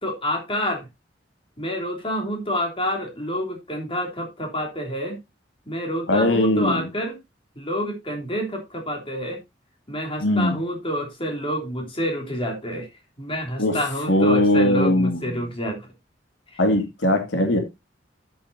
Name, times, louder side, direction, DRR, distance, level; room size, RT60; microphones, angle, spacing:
voice 1, 0.0-0.8 1.6-5.2 5.7-7.2 7.5-9.4 9.9-12.9 13.2-15.8 16.5-16.6, equal, 30° left, 3.2 m, -28 dB
voice 2, 6.1-6.9 10.2-10.6 13.6-15.4 16.6-17.6, left 1 dB, 85° left, 2.3 m, -20 dB
11.0 x 8.6 x 2.7 m
head